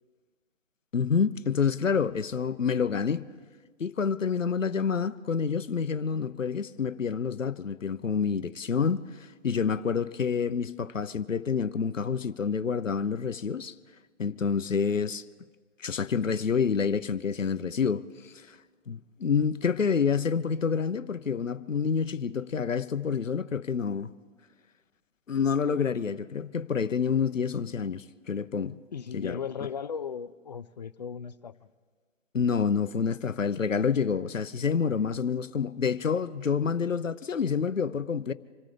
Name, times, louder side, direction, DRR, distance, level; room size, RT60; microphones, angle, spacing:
voice 1, 0.9-3.2 3.8-13.7 14.2-15.2 15.8-18.6 18.9-24.1 25.3-28.8 29.1-29.4 32.3-38.3, left 6 dB, 90° left, 0.9 m, -28 dB
voice 2, 28.9-31.5, left 7 dB, 35° left, 0.5 m, -36 dB
27.0 x 14.5 x 3.4 m
figure-of-eight pair, 145°, 37 cm